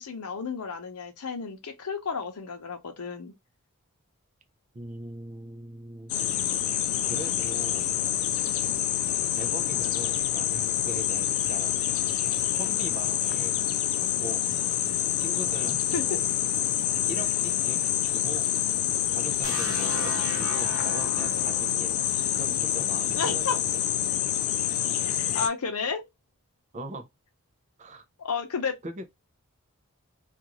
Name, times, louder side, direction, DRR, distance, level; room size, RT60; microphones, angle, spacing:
voice 1, 0.0-3.3 15.9-16.2 23.1-23.6 25.3-26.0 28.2-28.7, left 5 dB, 85° left, 0.7 m, -31 dB
voice 2, 4.7-6.1 7.0-7.9 9.3-11.8 12.5-13.5 14.0-14.4 15.2-16.2 17.1-18.5 19.1-21.9 22.4-23.4 26.7-27.1 27.8-28.0 28.8-29.0, right 1 dB, 30° right, 0.5 m, -40 dB
sound 1, 6.1-25.5, left 11 dB, 65° left, 0.3 m, -27 dB
sound 2, 19.4-23.3, right 2 dB, 75° right, 0.7 m, -38 dB
2.5 x 2.4 x 2.9 m
head